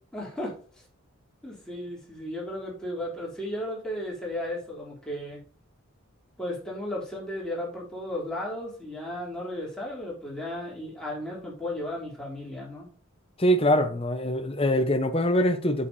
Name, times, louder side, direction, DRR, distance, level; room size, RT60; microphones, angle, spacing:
voice 1, 0.1-0.6 1.4-5.4 6.4-12.9, left 1 dB, 5° left, 3.3 m, -34 dB
voice 2, 13.4-15.9, equal, 25° left, 0.9 m, -23 dB
8.1 x 7.2 x 2.8 m
head